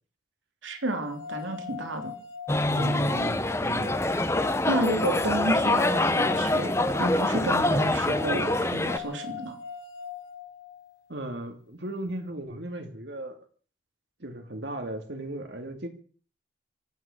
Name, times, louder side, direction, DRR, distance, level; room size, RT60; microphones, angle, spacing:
voice 1, 0.6-2.1 4.7-6.7 7.0-9.6, right 1 dB, 80° right, 5 dB, 3.2 m, -31 dB
sound 1, 0.9-11.0, left 8 dB, 65° left, 5.5 m, -41 dB
sound 2, 2.5-9.0, left 1 dB, 15° left, 1.0 m, -25 dB
voice 2, 2.7-4.0 11.1-13.4 14.2-15.9, right 1 dB, 60° right, 5 dB, 2.4 m, -36 dB
25.0 x 9.6 x 6.0 m, 0.43 s
head